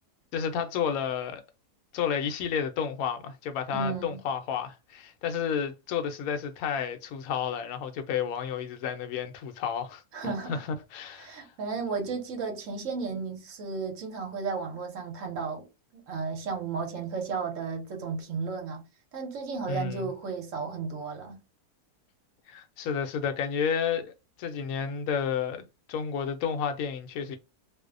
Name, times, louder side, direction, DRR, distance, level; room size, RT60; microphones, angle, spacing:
voice 1, 0.3-1.4 1.9-11.5 19.7-20.1 22.5-24.1 24.4-27.4, left 7 dB, 70° left, 0.9 m, -31 dB
voice 2, 3.7-4.2 10.1-10.6 11.2-15.7 15.9-18.9 19.1-21.4, right 5 dB, 60° right, 0.9 m, -34 dB
2.6 x 2.0 x 2.4 m
omnidirectional pair, 1.7 m